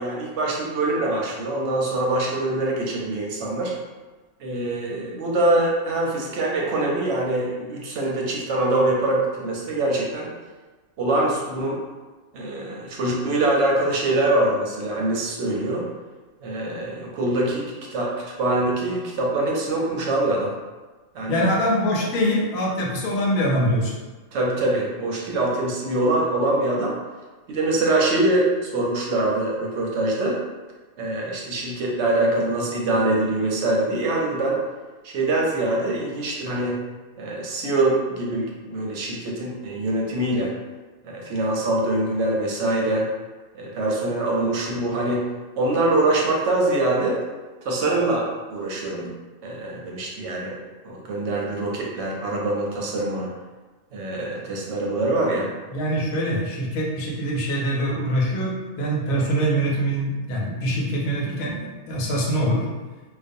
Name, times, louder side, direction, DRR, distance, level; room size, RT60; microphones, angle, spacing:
voice 1, 0.0-3.7 4.4-10.3 11.0-11.8 12.3-15.8 16.4-18.1 18.4-20.5 21.1-21.5 24.3-27.0 27.5-30.4 31.0-34.6 35.0-36.8 37.2-40.5 41.0-43.1 43.5-45.3 45.6-47.2 47.6-49.1 49.4-53.3 53.9-55.5, right 2 dB, 65° right, -2 dB, 0.8 m, -24 dB
voice 2, 21.3-24.0 55.7-62.7, equal, 85° left, -2 dB, 1.0 m, -24 dB
2.4 x 2.2 x 2.5 m, 1.3 s
omnidirectional pair, 1.4 m